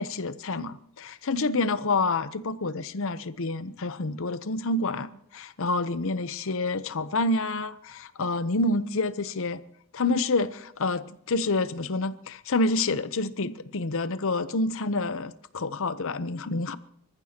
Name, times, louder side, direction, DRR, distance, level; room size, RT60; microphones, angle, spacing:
voice 1, 0.0-9.6 9.9-16.8, left 2 dB, 65° left, 0.8 m, -28 dB
26.5 x 14.5 x 2.9 m
head